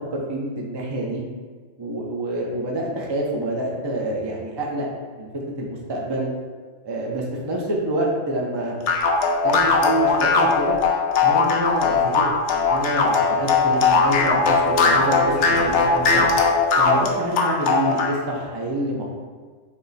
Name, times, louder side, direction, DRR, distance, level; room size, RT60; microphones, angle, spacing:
voice 1, 0.1-1.2 1.8-4.9 5.2-5.3 5.6-6.3 6.8-8.7 9.4-10.7 11.2-16.3 16.8-19.1, right 1 dB, 30° right, -3 dB, 0.5 m, -27 dB
sound 1, 8.9-18.2, left 4 dB, 70° left, 0.8 m, -19 dB
6.1 x 2.1 x 4.0 m, 1.5 s
omnidirectional pair, 1.4 m